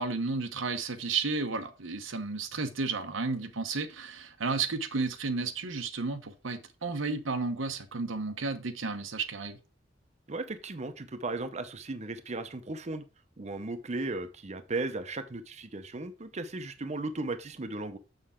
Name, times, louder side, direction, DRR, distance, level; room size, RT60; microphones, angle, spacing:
voice 1, 0.0-9.6, right 4 dB, 90° right, 1.0 m, -32 dB
voice 2, 10.3-13.0 13.4-18.0, right 2 dB, 35° right, 0.7 m, -36 dB
6.8 x 6.6 x 3.7 m
head